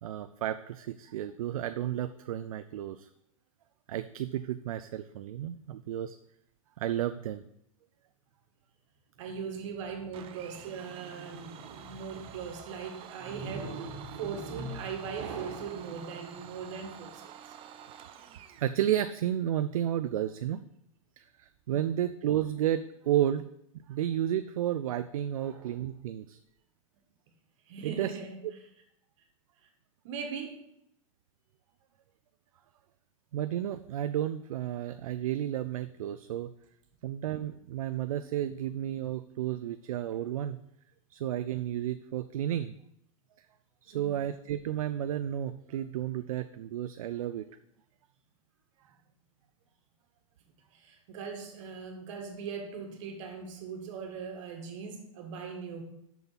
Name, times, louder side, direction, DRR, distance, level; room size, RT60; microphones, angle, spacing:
voice 1, 0.0-3.1 3.9-6.2 6.8-7.4 18.6-20.6 21.2-23.5 23.7-26.4 27.8-28.2 33.3-36.5 37.0-40.6 41.1-42.7 43.8-47.5, right 11 dB, 75° right, 11 dB, 0.4 m, -32 dB
voice 2, 9.2-17.5 21.7-21.9 25.4-25.8 27.7-28.4 30.0-30.6 43.9-44.2 50.7-55.8, right 5 dB, 60° right, 4 dB, 1.7 m, -39 dB
Domestic sounds home sounds, 10.1-18.8, right 9 dB, 30° right, 0.6 m, -49 dB
6.1 x 5.5 x 5.7 m, 0.79 s
hypercardioid pair, 120°, 18 cm